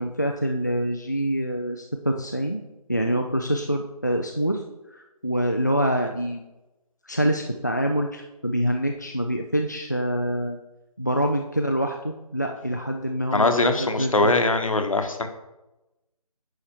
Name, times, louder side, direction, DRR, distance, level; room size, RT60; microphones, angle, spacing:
voice 1, 0.0-2.6 2.9-4.6 4.9-6.4 7.1-10.6 11.0-14.1, equal, 30° left, 3 dB, 0.4 m, -26 dB
voice 2, 13.3-15.3, left 2 dB, 60° left, 7 dB, 1.1 m, -21 dB
9.9 x 4.8 x 4.4 m, 0.98 s
figure-of-eight pair, 180°, 19 cm